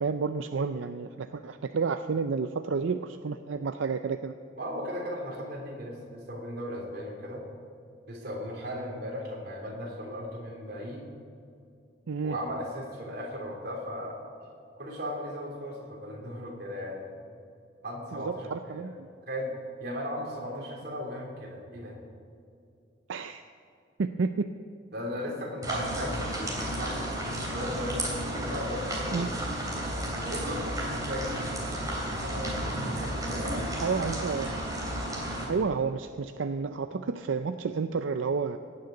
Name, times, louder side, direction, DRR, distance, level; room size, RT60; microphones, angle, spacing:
voice 1, 0.0-4.3 12.1-12.4 18.1-19.1 23.1-23.4 24.0-24.5 29.1-29.3 33.8-34.5 35.4-38.6, right 5 dB, 80° right, 9 dB, 0.5 m, -30 dB
voice 2, 4.6-7.4 8.1-11.1 12.2-14.2 14.8-17.1 17.8-18.9 19.3-19.5 19.8-22.0 24.9-27.1 27.5-29.5 30.2-34.2, equal, 55° right, -1 dB, 3.5 m, -37 dB
sound 1, 25.6-35.5, right 1 dB, 20° right, 3.1 m, -33 dB
18.0 x 6.7 x 8.3 m, 2.5 s
head